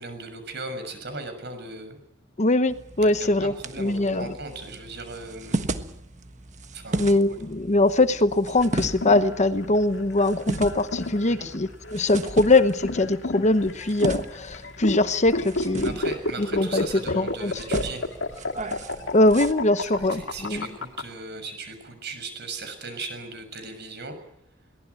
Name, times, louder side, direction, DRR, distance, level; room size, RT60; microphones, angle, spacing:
voice 1, 0.0-2.0 3.0-5.7 6.7-7.1 11.3-11.5 15.8-18.1 19.8-24.2, right 3 dB, 60° right, 8 dB, 6.5 m, -38 dB
voice 2, 2.4-4.3 7.0-15.9 16.4-16.8 17.1-17.6 19.1-20.6, left 2 dB, 35° left, 11 dB, 1.0 m, -22 dB
sound 1, 2.7-19.5, right 2 dB, 40° right, 1.4 m, -36 dB
sound 2, 8.6-21.0, left 2 dB, 70° left, 2.3 m, -31 dB
22.5 x 18.5 x 9.6 m, 0.78 s
head